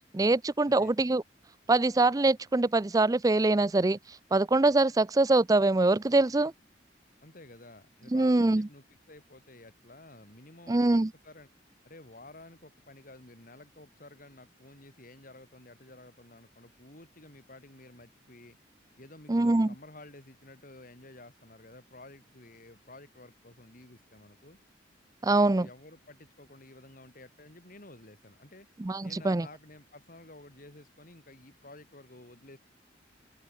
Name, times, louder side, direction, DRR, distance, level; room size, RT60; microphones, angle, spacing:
voice 1, 0.1-1.2 1.7-4.0 4.3-6.5 8.1-8.7 10.7-11.1 19.3-19.7 25.2-25.7 28.8-29.5, right 2 dB, 20° right, 0.4 m, -24 dB
voice 2, 7.2-11.5 11.8-18.6 19.0-24.6 25.2-28.7 29.0-32.6, left 2 dB, 45° left, 3.8 m, -52 dB
open air
head